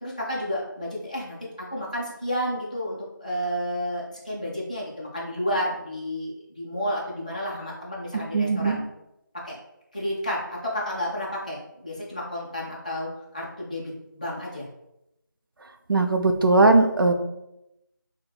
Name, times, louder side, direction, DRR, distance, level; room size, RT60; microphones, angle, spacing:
voice 1, 0.0-8.8 9.4-9.6 9.9-14.7, equal, 20° left, -6 dB, 0.4 m, -31 dB
voice 2, 8.3-8.8 15.9-17.1, right 2 dB, 90° right, 5 dB, 0.4 m, -19 dB
4.4 x 2.1 x 2.2 m, 0.87 s
figure-of-eight pair, 175°, 11 cm